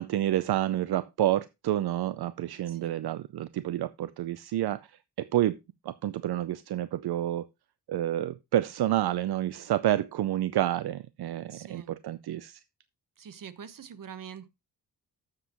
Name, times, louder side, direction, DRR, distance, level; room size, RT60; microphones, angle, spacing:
voice 1, 0.0-4.9 5.2-5.6 5.8-7.5 7.9-12.6, right 13 dB, 75° right, 0.6 m, -29 dB
voice 2, 2.6-3.0 11.5-12.0 13.2-14.5, right 8 dB, 55° right, 1.0 m, -45 dB
12.0 x 7.6 x 3.0 m
wide cardioid pair, 130°, 39 cm